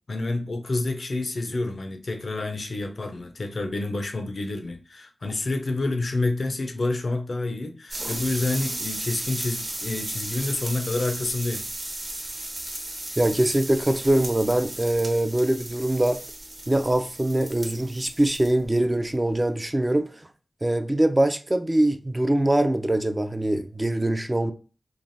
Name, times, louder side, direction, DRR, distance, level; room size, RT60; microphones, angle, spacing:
voice 1, 0.1-11.6, left 2 dB, 65° left, 0.4 m, -28 dB
sound 1, 7.9-18.7 19.0-19.3, right 1 dB, 45° right, 0.9 m, -35 dB
voice 2, 13.2-16.2 16.7-20.1 20.6-24.5, right 1 dB, 20° right, 0.3 m, -23 dB
3.2 x 2.3 x 2.6 m
wide cardioid pair, 75°, 0 cm